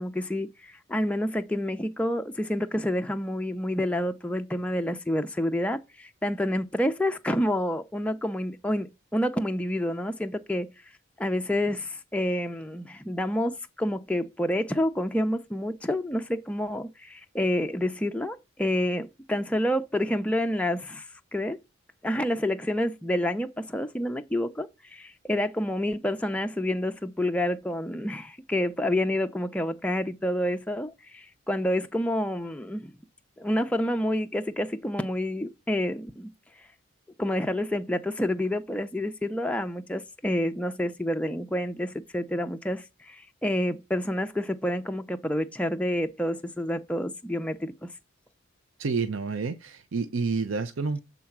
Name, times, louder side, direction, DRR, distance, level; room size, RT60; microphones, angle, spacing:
voice 1, 0.0-10.7 11.2-21.6 22.0-32.9 33.4-36.3 37.2-47.9, left 1 dB, 5° left, 0.4 m, -28 dB
voice 2, 48.8-51.0, right 4 dB, 70° right, 0.5 m, -29 dB
7.5 x 3.9 x 5.9 m
head